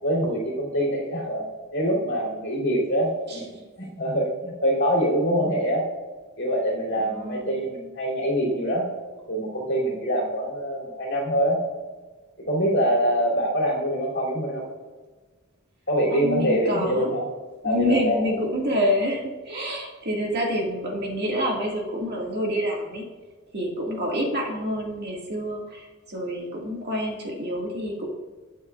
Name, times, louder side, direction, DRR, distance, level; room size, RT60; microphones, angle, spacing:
voice 1, 0.0-1.4 1.7-5.8 6.4-8.8 9.3-11.6 12.5-14.6 15.9-17.2 17.6-18.2, equal, 55° left, -3 dB, 3.0 m, -24 dB
voice 2, 7.0-7.7 16.1-17.1 17.6-23.0 23.5-28.1, equal, 50° right, -2 dB, 1.9 m, -27 dB
19.0 x 7.0 x 2.4 m, 1.3 s
head